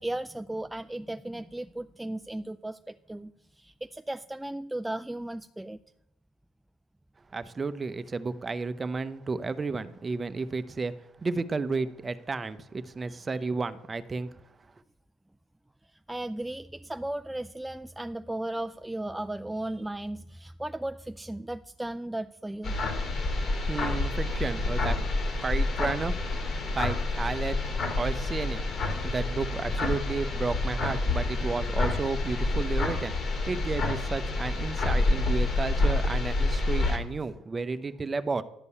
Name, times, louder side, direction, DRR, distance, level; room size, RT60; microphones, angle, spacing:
voice 1, 0.0-3.3 3.6-5.8 16.1-22.7, right 1 dB, 10° right, 9 dB, 0.4 m, -35 dB
voice 2, 7.3-14.3 23.7-25.0 25.4-26.2 26.7-27.6 27.9-28.7 29.0-38.4, right 4 dB, 30° right, 13 dB, 0.7 m, -32 dB
sound 1, 22.6-37.0, left 2 dB, 50° left, 2.6 m, -28 dB
11.0 x 5.3 x 8.4 m, 0.78 s
supercardioid pair, 75°, 0 cm